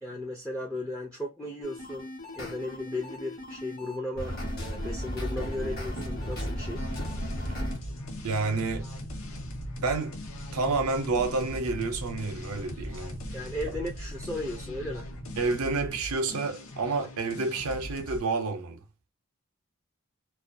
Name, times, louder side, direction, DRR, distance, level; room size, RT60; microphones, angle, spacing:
voice 1, 0.0-6.8 13.3-15.1, left 1 dB, 5° left, 0.3 m, -36 dB
sound 1, 1.6-7.8, equal, 45° left, 1.0 m, -35 dB
sound 2, 5.9-15.5, equal, 90° left, 1.1 m, -42 dB
sound 3, 6.7-18.2, left 1 dB, 75° left, 0.6 m, -42 dB
voice 2, 8.2-8.9 9.8-10.2 10.5-13.2 15.4-18.8, right 3 dB, 90° right, 0.6 m, -29 dB
2.3 x 2.2 x 2.5 m
head